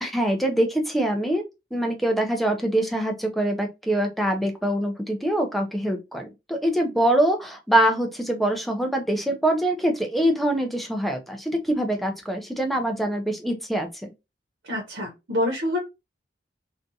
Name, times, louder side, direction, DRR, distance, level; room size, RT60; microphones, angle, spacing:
voice 1, 0.0-1.4 1.7-14.1, right 1 dB, ahead, 0.4 m, -24 dB
voice 2, 14.7-15.8, left 1 dB, 85° right, 0.8 m, -26 dB
2.5 x 2.2 x 2.6 m
head